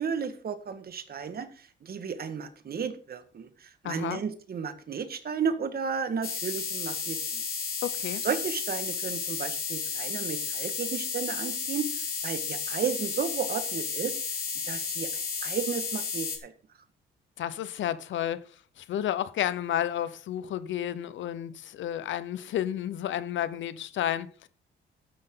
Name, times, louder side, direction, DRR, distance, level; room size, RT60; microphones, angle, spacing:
voice 1, 0.0-7.4 8.2-14.2 14.7-16.5, right 6 dB, 50° right, 1.7 m, -33 dB
voice 2, 3.8-4.2 7.8-8.2 17.4-18.4 18.8-24.5, left 11 dB, 75° left, 0.9 m, -31 dB
sound 1, 6.2-16.4, left 5 dB, 50° left, 3.4 m, -33 dB
12.5 x 9.8 x 3.9 m
cardioid pair, 90°, 20 cm